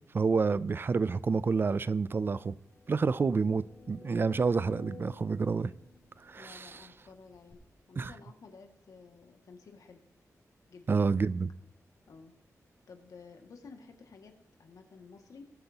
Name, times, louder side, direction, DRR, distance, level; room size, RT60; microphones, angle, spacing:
voice 1, 0.1-2.5 2.9-5.7 6.2-6.8 8.0-8.1 10.9-11.5, right 4 dB, 40° right, 0.4 m, -28 dB
sound 1, 1.5-1.6 2.0-2.1 2.6-6.8 7.5-7.6, left 4 dB, 35° left, 4.4 m, -53 dB
voice 2, 6.4-10.0 10.7-11.0 12.1-12.3 12.9-15.5, left 4 dB, 85° left, 2.1 m, -53 dB
21.0 x 9.4 x 2.9 m
wide cardioid pair, 150°, 6 cm